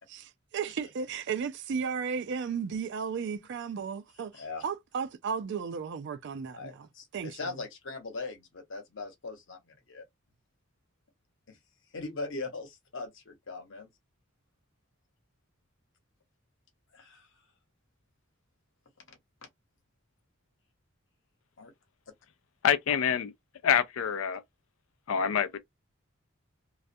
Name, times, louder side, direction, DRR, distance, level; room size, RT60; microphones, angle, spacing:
voice 1, 0.5-7.5, right 6 dB, 60° right, 0.4 m, -34 dB
voice 2, 6.5-9.6 9.9-10.0 11.5-11.6 11.9-13.9 16.9-17.3 19.1-19.2 21.6-21.7, left 3 dB, 65° left, 0.9 m, -40 dB
voice 3, 22.6-23.3 23.6-24.4 25.1-25.6, left 8 dB, 90° left, 0.4 m, -26 dB
2.4 x 2.1 x 2.6 m
head